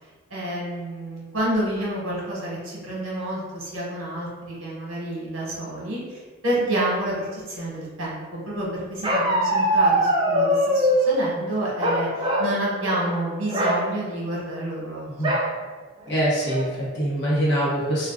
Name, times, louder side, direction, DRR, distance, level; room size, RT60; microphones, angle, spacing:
voice 1, 0.3-15.4, right 1 dB, 65° right, -5 dB, 1.0 m, -29 dB
Bark, 9.0-11.1 11.8-12.5 12.9-13.1 13.5-13.8 15.2-15.5 16.1-16.2 16.5-16.9, equal, 20° right, 0.4 m, -21 dB
voice 2, 16.1-18.1, right 1 dB, 50° left, -6 dB, 0.9 m, -24 dB
2.3 x 2.3 x 3.6 m, 1.4 s
head